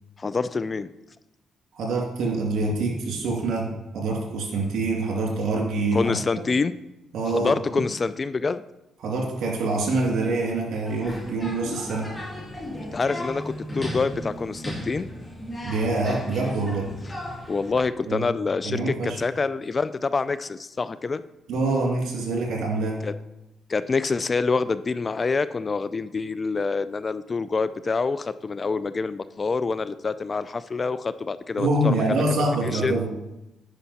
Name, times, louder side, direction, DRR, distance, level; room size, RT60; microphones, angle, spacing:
voice 1, 0.2-0.9 5.9-6.7 7.3-8.6 12.8-15.1 17.5-21.2 23.0-23.1 23.7-32.0 32.7-33.0, left 4 dB, 35° left, 15 dB, 0.3 m, -26 dB
voice 2, 1.8-6.2 7.1-7.5 9.0-12.1 15.6-16.8 18.1-18.2 18.6-19.2 21.5-23.0 31.6-33.1, right 2 dB, 75° right, 1 dB, 2.2 m, -25 dB
sound 1, 10.8-17.8, equal, 15° left, 2.5 m, -35 dB
9.8 x 5.5 x 4.2 m, 0.96 s
cardioid pair, 80°, 0 cm